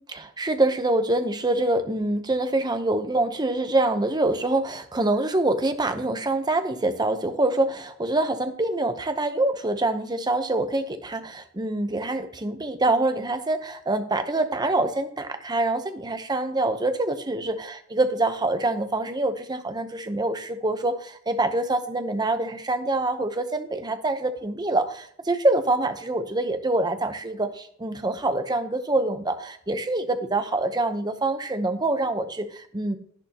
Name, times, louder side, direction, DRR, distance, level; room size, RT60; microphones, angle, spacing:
voice 1, 0.0-33.0, right 2 dB, 20° right, 8 dB, 0.8 m, -25 dB
11.0 x 10.5 x 2.9 m, 0.64 s
head